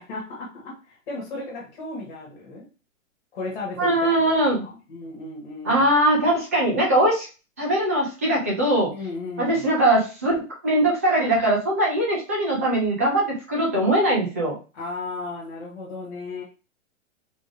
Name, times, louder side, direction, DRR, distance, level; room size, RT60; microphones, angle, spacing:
voice 1, 0.0-2.6 3.3-5.9 8.9-9.7 14.7-16.4, left 3 dB, 40° left, -4 dB, 2.0 m, -35 dB
voice 2, 3.8-4.6 5.6-7.3 7.6-8.9 9.4-14.6, right 1 dB, 10° right, -4 dB, 0.5 m, -21 dB
3.9 x 3.5 x 3.3 m, 0.33 s
hypercardioid pair, 175°, 40 cm